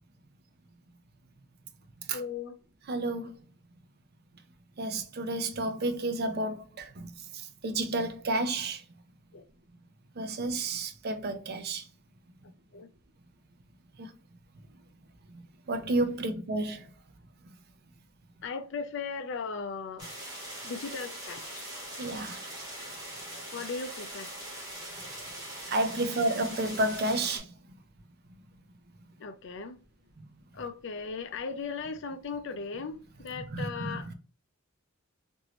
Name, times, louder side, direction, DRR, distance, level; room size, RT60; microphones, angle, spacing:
voice 1, 2.1-2.5 9.3-9.4 12.7-12.9 18.4-20.1 20.6-21.6 23.5-24.3 29.2-29.8 30.5-34.1, left 5 dB, 60° left, 0.5 m, -37 dB
voice 2, 2.9-3.3 4.8-7.1 7.6-8.8 10.2-11.8 14.0-14.1 15.7-16.9 22.0-22.4 25.7-27.5 33.5-34.1, right 2 dB, 50° right, 0.5 m, -31 dB
sound 1, 20.0-27.4, right 1 dB, 20° right, 1.3 m, -41 dB
3.0 x 2.6 x 2.9 m
head